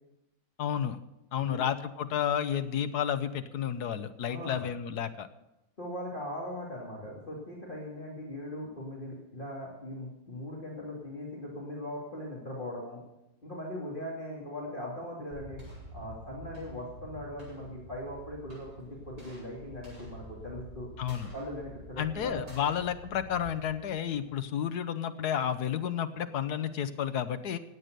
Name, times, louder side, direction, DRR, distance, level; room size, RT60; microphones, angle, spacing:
voice 1, 0.6-1.0 1.3-5.3 21.0-21.3 22.0-27.6, left 9 dB, 75° left, 11 dB, 1.5 m, -31 dB
voice 2, 1.3-1.6 4.3-4.7 5.8-13.0 13.4-15.6 15.9-20.9 21.3-22.4, left 1 dB, 30° left, -4 dB, 2.8 m, -40 dB
sound 1, 15.3-24.4, equal, 55° right, 8.0 m, -48 dB
16.5 x 9.3 x 6.7 m, 0.93 s
omnidirectional pair, 1.7 m